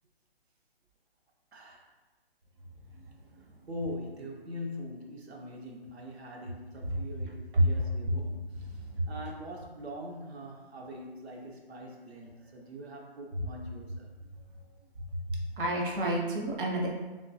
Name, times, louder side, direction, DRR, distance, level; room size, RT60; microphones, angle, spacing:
voice 1, 1.5-1.9 3.4-14.1, equal, 85° right, 1 dB, 0.8 m, -43 dB
voice 2, 8.8-9.1 15.1-16.9, right 1 dB, 55° right, -1 dB, 0.7 m, -29 dB
3.6 x 2.9 x 2.7 m, 1.2 s
hypercardioid pair, 165°, 31 cm